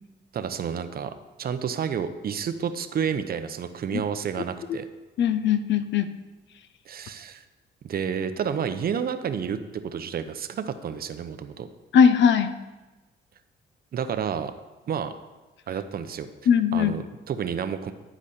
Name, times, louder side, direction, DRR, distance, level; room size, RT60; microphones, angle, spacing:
voice 1, 0.3-1.1 1.4-4.8 6.9-7.4 7.8-11.7 13.9-14.5 14.9-15.1 15.7-16.3 16.7-17.9, right 7 dB, 50° right, 10 dB, 0.6 m, -30 dB
voice 2, 5.2-6.1 11.9-12.5 16.5-17.0, left 7 dB, 65° left, 11 dB, 0.6 m, -19 dB
10.0 x 5.0 x 4.2 m, 1.1 s
cardioid pair, 90°, 20 cm